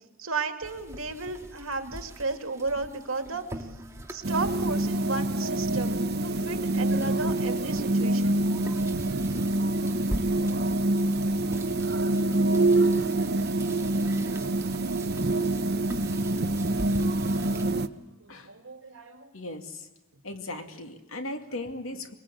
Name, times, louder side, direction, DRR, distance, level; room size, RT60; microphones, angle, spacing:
voice 1, 0.2-3.7 4.1-8.5 10.8-11.0 18.2-19.3 20.5-20.7 21.9-22.0, right 3 dB, 75° right, 6 dB, 2.2 m, -34 dB
sound 1, 0.6-17.7, right 1 dB, 15° right, 2.0 m, -43 dB
sound 2, 4.2-17.9, right 2 dB, 50° right, 0.9 m, -26 dB
voice 2, 19.3-19.8 20.2-22.1, left 2 dB, 80° left, 6 dB, 2.4 m, -37 dB
24.0 x 21.5 x 8.6 m, 1.0 s
head